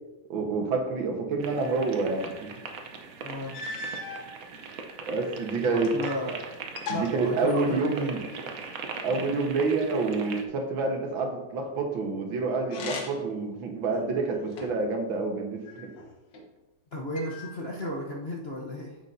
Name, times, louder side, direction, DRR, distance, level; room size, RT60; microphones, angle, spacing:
voice 1, 0.3-2.5 5.1-5.9 6.9-8.2 9.0-15.9, right 3 dB, 80° right, 2 dB, 1.9 m, -28 dB
sound 1, 1.4-10.5, right 4 dB, 55° right, 1.1 m, -40 dB
sound 2, 2.9-3.0 3.5-4.3 5.1-6.3 6.5-8.1 12.6-13.4 13.9-14.9 15.7-16.5 17.1-17.9, left 3 dB, 70° left, 1.7 m, -39 dB
voice 2, 3.2-3.6 5.6-6.4 6.9-8.1 16.9-19.0, left 1 dB, 45° left, -2 dB, 0.8 m, -34 dB
9.5 x 8.0 x 2.7 m, 1.1 s
omnidirectional pair, 2.2 m